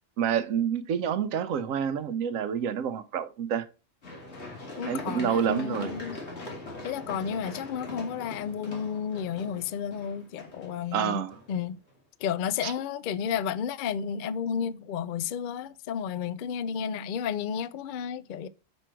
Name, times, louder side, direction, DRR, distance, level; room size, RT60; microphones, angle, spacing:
voice 1, 0.2-3.7 4.9-5.9 10.9-11.3 12.6-12.7, right 8 dB, 80° right, 1.0 m, -28 dB
Run, 4.0-11.9 12.4-12.5, left 2 dB, 55° left, 2.2 m, -42 dB
voice 2, 4.8-6.2 6.8-11.2 11.5-11.8 12.2-18.5, left 7 dB, 80° left, 0.4 m, -32 dB
6.2 x 5.3 x 4.5 m
omnidirectional pair, 1.4 m